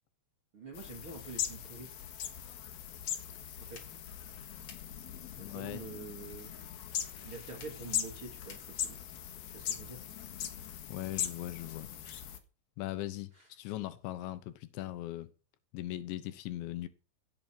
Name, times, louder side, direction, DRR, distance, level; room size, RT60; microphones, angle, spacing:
voice 1, 0.5-1.9 3.6-3.9 5.4-6.5 7.2-9.0 9.5-10.0, right 3 dB, 35° right, 2.9 m, -46 dB
sound 1, 0.7-12.4, left 10 dB, 65° left, 3.3 m, -40 dB
sound 2, 3.7-9.1, left 5 dB, 45° left, 2.8 m, -60 dB
voice 2, 5.4-5.8 10.9-11.9 12.8-15.3 15.7-16.9, left 15 dB, 85° left, 3.3 m, -39 dB
16.5 x 8.6 x 6.1 m
omnidirectional pair, 5.0 m